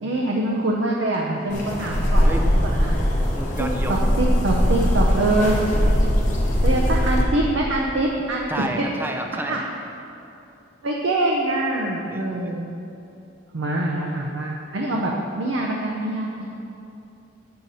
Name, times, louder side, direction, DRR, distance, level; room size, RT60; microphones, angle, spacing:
voice 1, 0.0-3.0 3.6-5.6 6.6-8.9 9.5-9.6 10.8-12.7 13.5-16.5, right 2 dB, 70° right, -1 dB, 0.6 m, -24 dB
sound 1, 1.5-7.2, equal, 40° left, 1.0 m, -20 dB
voice 2, 3.2-4.0 8.5-9.6 12.1-12.5, right 1 dB, 10° right, 3 dB, 0.5 m, -31 dB
7.6 x 5.7 x 4.1 m, 2.8 s
head